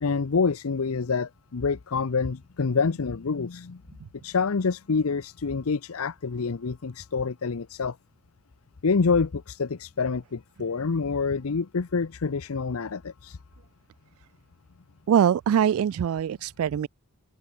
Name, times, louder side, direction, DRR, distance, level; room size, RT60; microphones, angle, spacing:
voice 1, 0.0-3.8 4.2-8.0 8.8-13.4, left 5 dB, 85° left, 0.7 m, -27 dB
voice 2, 15.1-16.9, right 8 dB, 85° right, 0.3 m, -23 dB
open air
head